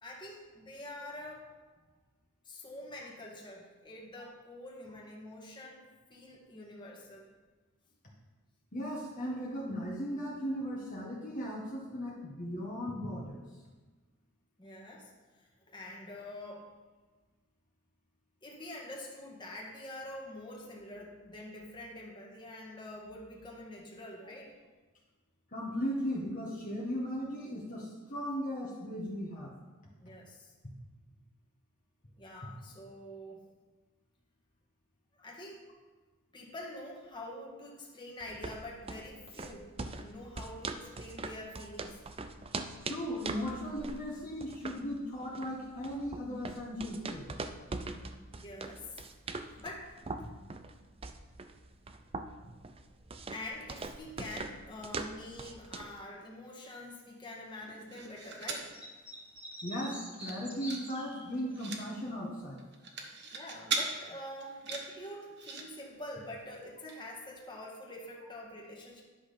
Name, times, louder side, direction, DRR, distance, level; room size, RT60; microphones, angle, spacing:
voice 1, 0.0-1.5 2.4-5.8 6.1-7.3 14.6-16.7 18.4-24.5 30.0-30.5 32.2-33.4 35.2-35.7 36.3-42.1 48.3-49.1 49.3-50.4 53.3-58.8 63.3-69.0, left 1 dB, 20° left, -3 dB, 1.8 m, -46 dB
voice 2, 8.7-13.4 25.5-29.5 32.4-32.5 42.8-47.3 59.6-62.6, equal, 40° left, -4 dB, 1.5 m, -37 dB
sound 1, 38.2-56.0, right 3 dB, 30° right, 0.5 m, -42 dB
sound 2, 57.6-58.7 59.2-59.3 59.5-59.8 60.1-60.9 61.1-61.8 62.6-63.9 64.4-65.6 66.5-66.6 66.9-67.0, right 4 dB, 55° right, 1.2 m, -38 dB
sound 3, 58.4-61.6, equal, 5° right, 1.8 m, -46 dB
10.5 x 6.2 x 5.1 m, 1.3 s
head